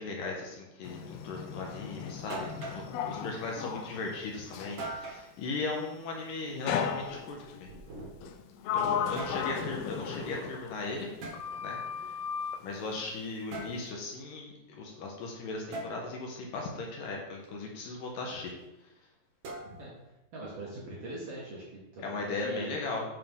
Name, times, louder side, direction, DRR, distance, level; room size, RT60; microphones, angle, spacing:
voice 1, 0.0-7.7 8.7-11.1 11.6-12.2 12.6-18.5 18.8-18.9 22.0-23.1, left 3 dB, 70° left, 0 dB, 2.1 m, -37 dB
Sliding door, 0.8-4.9 6.7-7.6 8.2-11.1 11.3-12.7, left 7 dB, 90° left, 2.2 m, -35 dB
sound 1, 2.3-2.9 4.8-5.3 6.9-8.4 8.9-9.5 11.2-11.4 13.5-13.8 15.7-15.9 19.4-20.0, right 2 dB, 65° right, 1.7 m, -41 dB
voice 2, 20.3-22.8, right 2 dB, 90° right, -5 dB, 1.3 m, -42 dB
9.0 x 5.6 x 3.6 m, 0.94 s
omnidirectional pair, 5.1 m